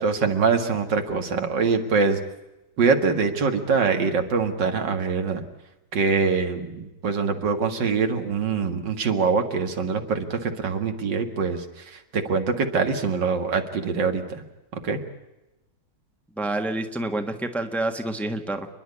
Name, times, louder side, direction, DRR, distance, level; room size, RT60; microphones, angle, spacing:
voice 1, 0.0-2.2 2.8-5.4 5.9-11.6 11.9-14.4 14.7-15.0, right 5 dB, 85° right, 6 dB, 2.5 m, -24 dB
voice 2, 16.4-18.7, right 2 dB, ahead, 6 dB, 1.2 m, -28 dB
29.5 x 11.0 x 9.7 m, 1.0 s
omnidirectional pair, 1.9 m